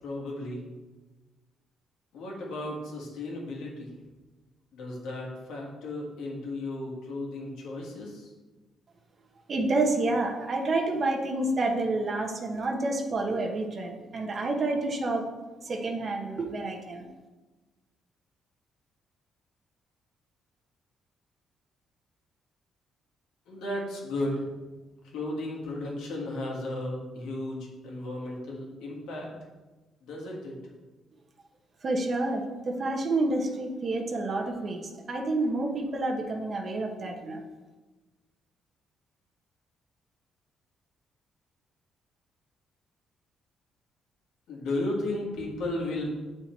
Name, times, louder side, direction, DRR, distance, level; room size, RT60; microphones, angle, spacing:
voice 1, 0.0-0.6 2.1-3.9 4.7-8.3 23.5-24.5 25.0-29.3 30.0-30.6 44.5-46.1, left 2 dB, 85° left, -2 dB, 2.0 m, -34 dB
voice 2, 9.5-15.2 15.6-17.1 31.8-37.4, right 2 dB, 45° right, 2 dB, 1.1 m, -29 dB
7.8 x 4.5 x 4.5 m, 1.2 s
cardioid pair, 90°, 0 cm